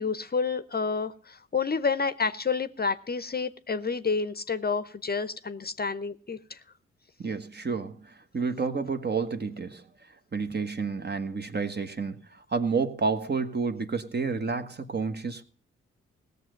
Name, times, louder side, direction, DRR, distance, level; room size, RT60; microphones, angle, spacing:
voice 1, 0.0-6.6, left 5 dB, 30° left, 13 dB, 0.8 m, -29 dB
voice 2, 7.2-15.4, right 4 dB, 35° right, 8 dB, 1.3 m, -30 dB
17.5 x 6.8 x 6.5 m, 0.43 s
hypercardioid pair, 40°, 30 cm